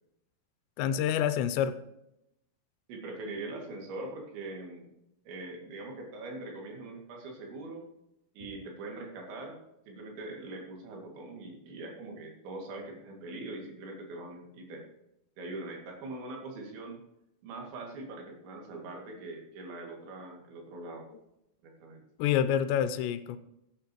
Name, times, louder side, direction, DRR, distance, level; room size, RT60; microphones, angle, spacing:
voice 1, 0.8-1.7 22.2-23.4, left 9 dB, 85° left, 12 dB, 2.9 m, -27 dB
voice 2, 2.9-4.9 5.3-7.8 8.4-9.6 9.9-14.9 15.4-17.0 17.4-21.1 21.6-22.0, right 2 dB, 80° right, 0 dB, 4.5 m, -42 dB
15.5 x 9.0 x 3.0 m, 0.84 s
omnidirectional pair, 5.1 m